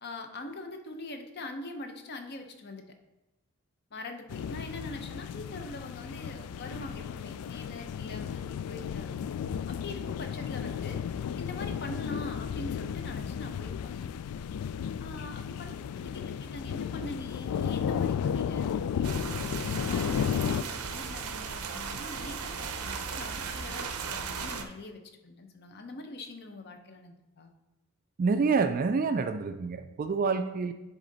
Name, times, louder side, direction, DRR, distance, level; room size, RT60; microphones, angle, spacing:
voice 1, 0.0-2.9 3.9-9.3 9.7-11.0 11.4-14.1 15.0-19.4 19.8-27.5, left 2 dB, 50° left, 5 dB, 0.8 m, -43 dB
sound 1, 4.3-20.6, left 8 dB, 90° left, 0.3 m, -34 dB
sound 2, 19.0-24.6, right 5 dB, 90° right, 0.6 m, -36 dB
voice 2, 28.2-30.7, right 4 dB, 40° right, 9 dB, 0.3 m, -27 dB
9.9 x 3.7 x 4.0 m, 1.0 s
head